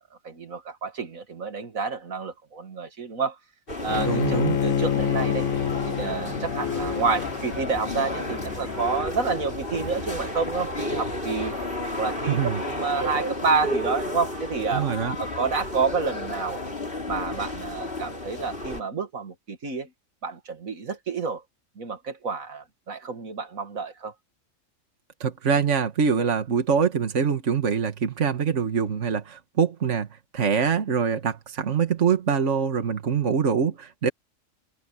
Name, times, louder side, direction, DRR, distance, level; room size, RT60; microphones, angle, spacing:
voice 1, 0.2-3.4 3.8-5.5 5.9-11.5 12.0-14.8 15.2-16.6 17.1-19.9 20.2-21.4 21.8-24.1 34.0-34.1, right 4 dB, 85° right, 2.4 m, -29 dB
sound 1, 3.7-18.8, left 1 dB, 40° left, 3.8 m, -32 dB
Bowed string instrument, 3.9-9.0, left 8 dB, 80° left, 1.3 m, -28 dB
voice 2, 4.1-4.6 12.3-12.6 14.7-15.2 25.2-30.1 30.3-34.1, right 6 dB, 65° right, 1.8 m, -24 dB
sound 2, 6.4-13.3, equal, 10° right, 4.9 m, -47 dB
omnidirectional pair, 1.4 m